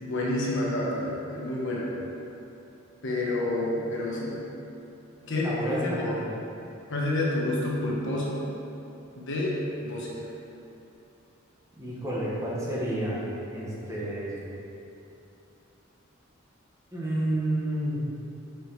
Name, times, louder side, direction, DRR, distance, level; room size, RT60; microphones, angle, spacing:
voice 1, 0.0-1.9 3.0-4.4 5.2-6.2 6.9-8.4 9.2-10.3, left 1 dB, 60° left, -4 dB, 1.3 m, -29 dB
voice 2, 3.3-3.8 5.4-6.4 11.8-13.2 13.5-14.3 16.9-18.0, right 1 dB, 15° right, -7 dB, 1.4 m, -30 dB
6.5 x 5.1 x 4.8 m, 2.8 s
head